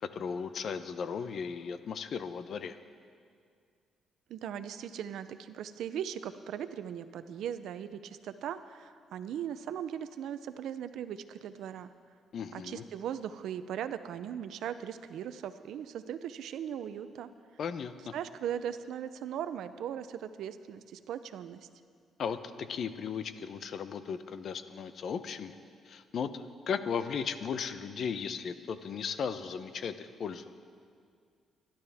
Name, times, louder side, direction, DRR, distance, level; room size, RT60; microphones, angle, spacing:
voice 1, 0.0-2.8 12.3-12.8 17.6-18.1 22.2-25.6 25.9-30.5, left 6 dB, 60° left, 11 dB, 0.7 m, -36 dB
voice 2, 4.3-11.9 12.5-17.3 18.1-21.7, right 9 dB, 80° right, 12 dB, 0.6 m, -39 dB
23.5 x 11.5 x 3.5 m, 2.2 s
cardioid pair, 90°, 0 cm